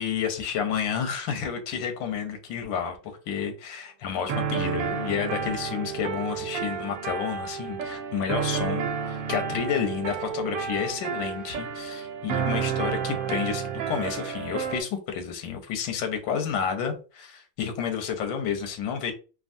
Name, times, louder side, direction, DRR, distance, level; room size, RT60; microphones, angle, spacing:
voice 1, 0.0-19.1, left 7 dB, 85° left, 1.3 m, -30 dB
sound 1, 4.3-14.8, right 6 dB, 80° right, 1.3 m, -31 dB
3.4 x 2.2 x 2.5 m
omnidirectional pair, 2.0 m